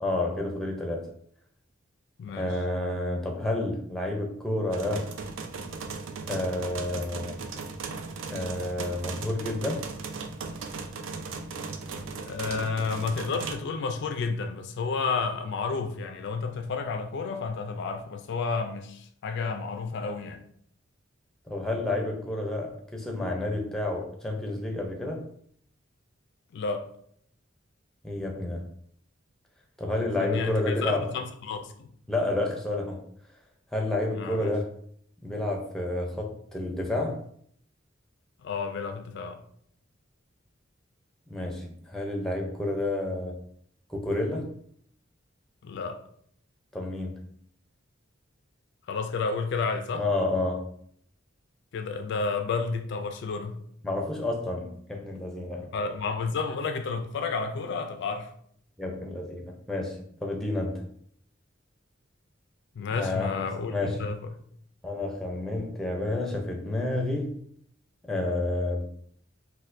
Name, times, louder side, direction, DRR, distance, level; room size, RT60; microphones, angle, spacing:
voice 1, 0.0-1.1 2.4-5.1 6.2-7.4 8.3-9.8 21.5-25.2 28.0-28.7 29.8-31.1 32.1-33.0 33.7-34.7 35.2-37.2 41.3-43.4 43.9-44.5 46.7-47.3 50.0-50.7 53.8-55.7 58.8-60.8 62.9-63.4 63.7-64.0 64.8-67.4 68.1-68.8, left 2 dB, ahead, 0.5 m, -30 dB
voice 2, 2.2-2.5 12.2-20.4 26.5-26.9 30.2-31.9 34.1-34.5 38.4-39.4 45.6-46.0 48.9-50.1 51.7-53.6 55.7-58.3 62.8-64.2, left 4 dB, 60° left, 0.3 m, -31 dB
sound 1, 4.7-13.6, right 4 dB, 70° right, 0.4 m, -37 dB
4.2 x 2.2 x 2.5 m
head